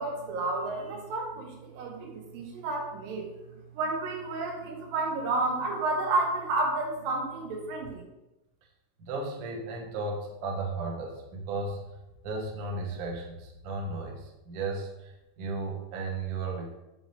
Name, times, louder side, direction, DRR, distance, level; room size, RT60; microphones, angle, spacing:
voice 1, 0.0-8.0, right 2 dB, 80° right, 1 dB, 2.8 m, -31 dB
voice 2, 9.0-11.8 12.2-16.7, right 3 dB, 60° right, -1 dB, 1.7 m, -35 dB
7.1 x 6.5 x 2.8 m, 0.97 s
omnidirectional pair, 3.9 m